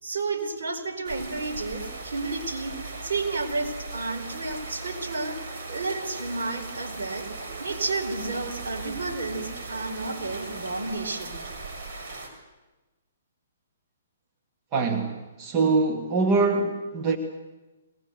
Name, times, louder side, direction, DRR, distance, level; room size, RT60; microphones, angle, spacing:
voice 1, 0.0-2.7 3.0-5.4 5.7-7.2 7.6-11.4, right 3 dB, 70° right, 2 dB, 4.9 m, -31 dB
sound 1, 1.0-12.3, right 3 dB, 55° right, 6.1 m, -38 dB
voice 2, 14.7-17.2, right 3 dB, 30° right, 4 dB, 1.9 m, -24 dB
22.5 x 19.5 x 8.1 m, 1.2 s
hypercardioid pair, 130°, 0 cm